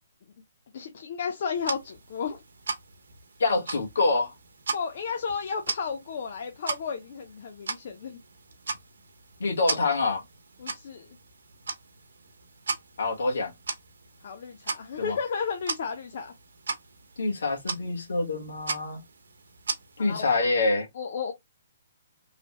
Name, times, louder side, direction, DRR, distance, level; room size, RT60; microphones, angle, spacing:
voice 1, 0.7-2.4 4.7-8.2 10.6-11.1 14.2-16.3 20.0-20.3 21.0-21.3, left 6 dB, 55° left, 0.6 m, -33 dB
sound 1, 1.5-20.4, right 4 dB, 85° right, 0.8 m, -38 dB
voice 2, 3.4-4.3 9.4-10.2 13.0-13.5 15.0-15.2 17.2-19.0 20.0-20.9, left 3 dB, 80° left, 1.3 m, -26 dB
3.2 x 2.1 x 3.0 m
hypercardioid pair, 155°, 0 cm